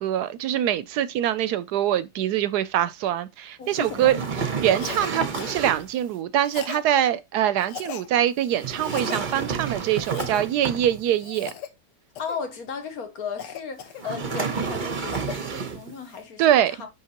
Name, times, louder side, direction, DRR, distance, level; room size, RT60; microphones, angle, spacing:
voice 1, 0.0-4.2 4.6-11.5 16.4-16.7, right 11 dB, 75° right, 1.1 m, -24 dB
voice 2, 3.6-4.8 12.2-16.9, left 6 dB, 60° left, 1.5 m, -36 dB
sound 1, 3.7-6.0 8.5-11.2 14.0-15.9, right 5 dB, 40° right, 0.8 m, -30 dB
Cough, 4.8-5.1 5.3-5.6 6.4-6.9 7.6-8.1 8.8-9.2 9.9-10.4 11.2-11.7 12.2-12.4 13.4-14.4 14.8-15.4, left 8 dB, 85° left, 1.5 m, -38 dB
10.0 x 3.5 x 2.9 m
omnidirectional pair, 1.8 m